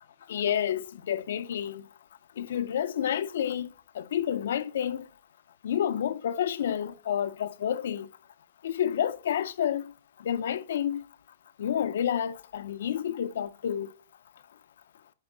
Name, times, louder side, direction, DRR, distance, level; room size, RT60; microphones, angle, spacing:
voice 1, 0.3-1.8 2.4-3.7 4.0-5.1 5.6-8.1 8.6-9.9 10.2-11.0 11.6-13.9, left 9 dB, 65° left, 0.6 m, -29 dB
9.7 x 3.6 x 5.0 m
hypercardioid pair, 170°, 0 cm